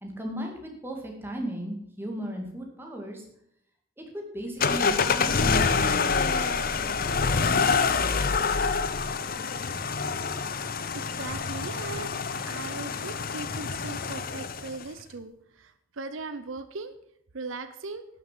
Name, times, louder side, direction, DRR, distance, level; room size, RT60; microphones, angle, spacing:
voice 1, 0.0-3.3 4.0-7.7, right 1 dB, 10° right, 1 dB, 2.1 m, -37 dB
sound 1, 4.6-14.8, left 5 dB, 45° left, 0.7 m, -26 dB
voice 2, 10.9-12.1 12.4-16.9 17.3-18.1, right 3 dB, 75° right, 10 dB, 0.8 m, -39 dB
12.0 x 6.6 x 7.4 m, 0.72 s
head